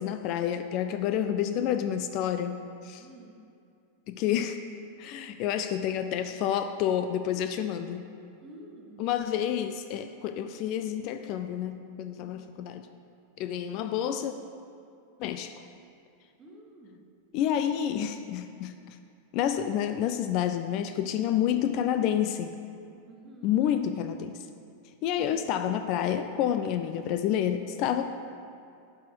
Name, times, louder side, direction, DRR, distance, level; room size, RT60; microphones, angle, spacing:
voice 1, 0.0-3.1 4.1-4.6 5.0-8.0 9.0-12.9 13.4-14.3 15.2-15.5 17.3-19.0 19.3-22.5 23.4-24.5 25.0-28.0, left 10 dB, 40° left, 9 dB, 0.3 m, -29 dB
voice 2, 3.0-3.4 8.4-9.0 12.2-12.4 16.4-17.0 23.1-23.6 25.2-25.5, right 1 dB, 20° right, -1 dB, 1.3 m, -50 dB
11.5 x 4.2 x 4.7 m, 2.5 s
figure-of-eight pair, 90°, 0 cm